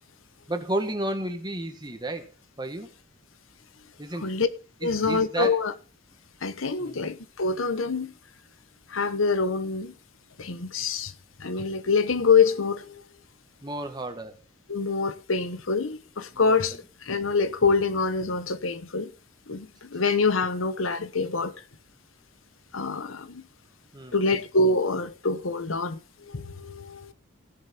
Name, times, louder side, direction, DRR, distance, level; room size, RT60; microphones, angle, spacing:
voice 1, 0.5-2.3 2.6-2.9 4.0-4.3 4.8-5.6 6.8-7.0 13.6-14.4 16.3-16.6 23.9-24.2, right 1 dB, 20° right, 1.6 m, -32 dB
voice 2, 4.8-5.7 6.4-8.1 8.9-9.9 10.4-11.1 11.4-13.0 14.7-19.1 19.5-21.5 22.7-23.4 24.1-27.1, left 4 dB, 75° left, 1.0 m, -25 dB
16.5 x 7.2 x 4.3 m
head